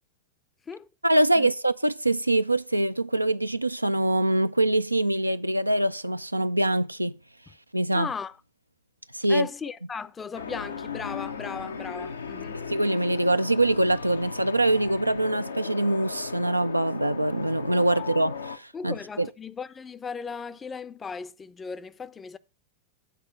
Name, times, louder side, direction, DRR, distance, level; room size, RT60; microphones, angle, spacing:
voice 1, 1.0-7.2 7.7-8.1 9.1-9.5 12.7-19.3, right 1 dB, 85° right, 0.3 m, -24 dB
voice 2, 7.9-8.3 9.3-12.6 17.9-18.0 18.7-22.4, left 6 dB, 20° left, 0.5 m, -37 dB
sound 1, 10.3-18.6, left 5 dB, 75° left, 0.6 m, -37 dB
9.0 x 4.3 x 6.3 m
figure-of-eight pair, 90°, 0 cm